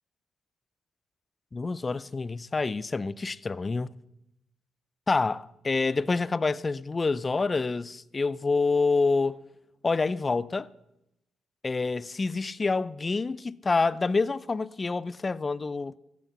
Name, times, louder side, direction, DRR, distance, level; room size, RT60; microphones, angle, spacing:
voice 1, 1.5-3.9 5.1-9.4 9.8-10.7 11.6-15.9, left 4 dB, 30° left, 0.4 m, -27 dB
13.5 x 8.3 x 6.7 m
cardioid pair, 90°, 0 cm